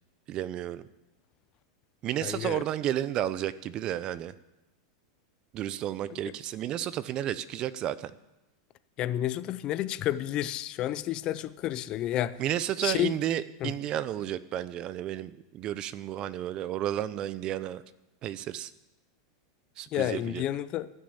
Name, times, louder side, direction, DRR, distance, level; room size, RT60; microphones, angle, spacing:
voice 1, 0.3-0.9 2.0-4.3 5.5-8.1 12.4-17.8 18.2-18.7 19.8-20.4, right 11 dB, 40° right, 0.6 m, -32 dB
voice 2, 2.2-2.6 6.1-6.2 9.0-12.4 12.8-13.1 13.6-13.7 19.9-20.9, left 13 dB, 40° left, 0.5 m, -30 dB
14.0 x 6.4 x 8.8 m
supercardioid pair, 125°, 2 cm